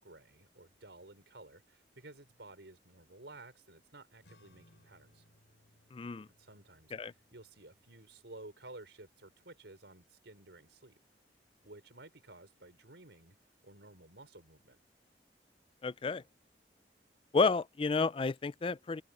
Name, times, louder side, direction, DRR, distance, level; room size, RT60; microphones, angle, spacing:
voice 1, 0.0-5.2 6.4-11.0 11.6-13.4 13.6-14.8, right 2 dB, 85° right, 4.7 m, -54 dB
sound 1, 4.2-10.9, left 1 dB, 90° left, 5.9 m, -68 dB
voice 2, 5.9-6.3 6.9-7.1 15.8-16.2 17.3-19.0, left 4 dB, 30° left, 0.4 m, -31 dB
head